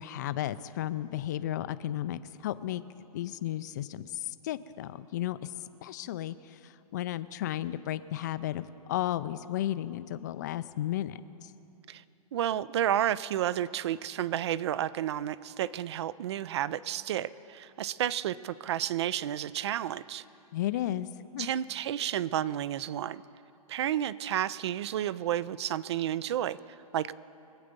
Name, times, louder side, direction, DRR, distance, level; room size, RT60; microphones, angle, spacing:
voice 1, 0.0-2.8 3.1-5.5 5.8-11.5 20.5-21.1 21.3-21.5, left 13 dB, 30° left, 14 dB, 0.4 m, -34 dB
voice 2, 12.3-20.2 21.4-23.2 23.7-27.1, right 11 dB, 45° right, 19 dB, 0.4 m, -31 dB
23.0 x 7.9 x 5.3 m, 2.8 s
hypercardioid pair, 160°, 19 cm